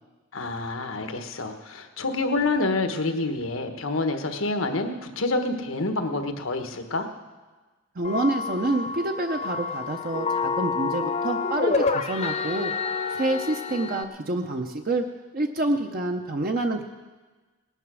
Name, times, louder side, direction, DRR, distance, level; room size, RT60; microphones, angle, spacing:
voice 1, 0.3-7.1, left 2 dB, 90° left, 6 dB, 1.3 m, -27 dB
sound 1, 8.0-14.0, left 4 dB, 35° left, 0.7 m, -28 dB
voice 2, 8.0-12.7 13.1-15.0 15.3-16.8, right 2 dB, 45° right, 4 dB, 0.7 m, -27 dB
19.0 x 9.1 x 6.2 m, 1.3 s
head